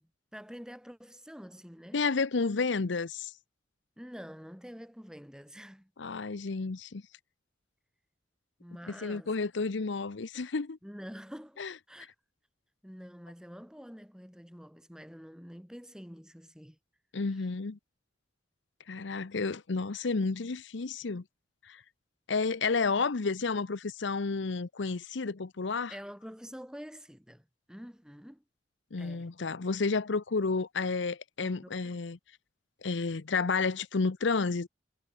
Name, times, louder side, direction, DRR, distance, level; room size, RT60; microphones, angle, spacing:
voice 1, 0.0-2.0 4.0-5.9 8.6-9.3 10.8-12.2 12.8-16.8 17.3-17.5 20.2-20.3 25.9-28.4 29.0-29.3 31.4-32.0, equal, 5° right, 6.8 m, -47 dB
voice 2, 1.9-3.3 6.0-7.0 9.0-10.8 11.6-11.7 17.1-17.8 18.9-21.2 21.7-21.8 22.3-25.9 28.9-32.2 32.8-34.7, left 4 dB, 75° left, 0.7 m, -31 dB
head